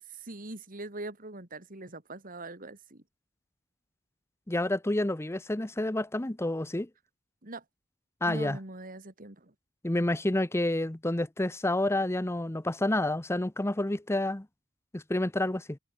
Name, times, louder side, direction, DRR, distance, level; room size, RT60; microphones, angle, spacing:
voice 1, 0.1-3.0 7.4-7.6 8.3-9.5, right 2 dB, 40° right, 3.2 m, -42 dB
voice 2, 4.5-6.9 8.2-8.6 9.8-14.5 14.9-15.8, left 1 dB, 10° left, 0.7 m, -29 dB
head